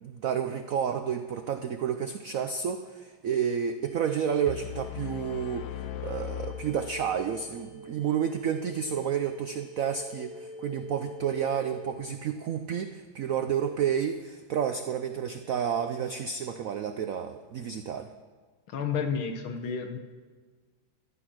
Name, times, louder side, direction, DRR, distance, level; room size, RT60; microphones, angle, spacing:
voice 1, 0.0-18.1, right 8 dB, 80° right, 8 dB, 0.7 m, -30 dB
sound 1, 3.8-11.9, left 1 dB, 5° right, 0.5 m, -45 dB
sound 2, 4.5-7.5, left 13 dB, 70° left, 1.0 m, -39 dB
voice 2, 18.7-20.0, left 6 dB, 90° left, 6 dB, 2.0 m, -31 dB
14.0 x 11.5 x 6.2 m, 1.4 s
omnidirectional pair, 2.2 m